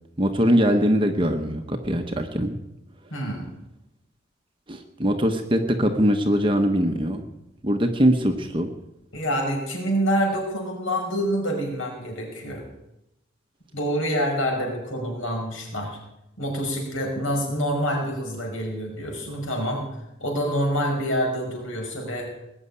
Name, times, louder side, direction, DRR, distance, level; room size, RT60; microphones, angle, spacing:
voice 1, 0.2-2.6 4.7-7.2 7.6-8.7, equal, 25° right, 5 dB, 1.0 m, -22 dB
voice 2, 3.1-3.5 9.1-12.6 13.7-16.0 16.4-19.8 20.2-22.3, equal, 70° left, 0 dB, 5.9 m, -26 dB
20.0 x 7.2 x 9.8 m, 0.88 s
head